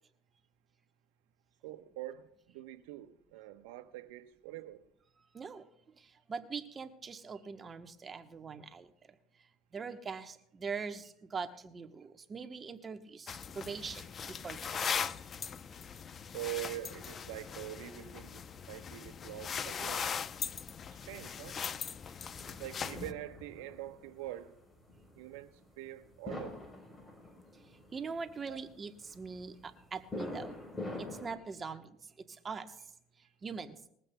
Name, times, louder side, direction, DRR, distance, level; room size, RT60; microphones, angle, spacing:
voice 1, 1.6-4.8 16.3-20.1 20.9-21.6 22.6-24.6 25.1-26.6 28.5-28.6, right 14 dB, 85° right, 1.0 m, -44 dB
voice 2, 5.3-5.7 6.0-9.1 9.7-15.1 27.5-27.6 27.9-30.5 31.0-31.9 32.3-32.8 33.2-33.8, right 5 dB, 30° right, 1.1 m, -42 dB
sound 1, 13.3-23.1, left 7 dB, 40° left, 0.6 m, -40 dB
sound 2, 22.3-31.4, left 2 dB, 20° left, 3.9 m, -45 dB
21.0 x 15.0 x 2.3 m
supercardioid pair, 100°, 0 cm